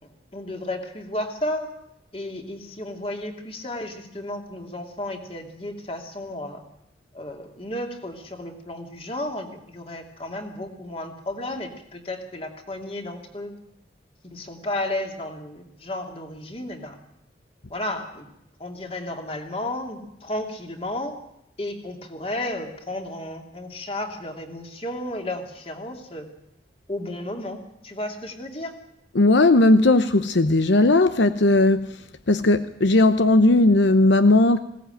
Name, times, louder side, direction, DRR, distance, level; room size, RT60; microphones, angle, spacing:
voice 1, 0.0-1.7 2.1-6.6 7.1-13.6 14.2-17.0 17.7-18.3 18.6-21.2 21.6-26.3 26.9-28.7, left 1 dB, 30° left, 2.7 m, -33 dB
voice 2, 29.1-32.0 32.3-34.6, left 2 dB, 75° left, 0.8 m, -17 dB
21.0 x 17.5 x 9.1 m
head